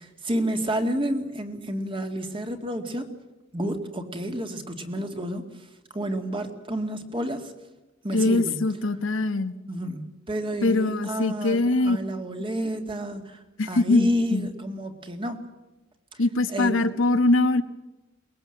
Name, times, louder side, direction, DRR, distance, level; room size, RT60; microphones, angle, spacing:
voice 1, 0.0-3.1 3.5-5.5 5.9-7.5 8.0-8.6 9.7-15.4 16.1-16.2 16.5-16.8, equal, 25° right, 6 dB, 2.1 m, -30 dB
voice 2, 8.1-9.6 10.6-12.0 13.6-14.5 16.2-17.6, left 2 dB, 75° left, 10 dB, 1.2 m, -22 dB
22.5 x 20.5 x 7.7 m, 1.1 s
head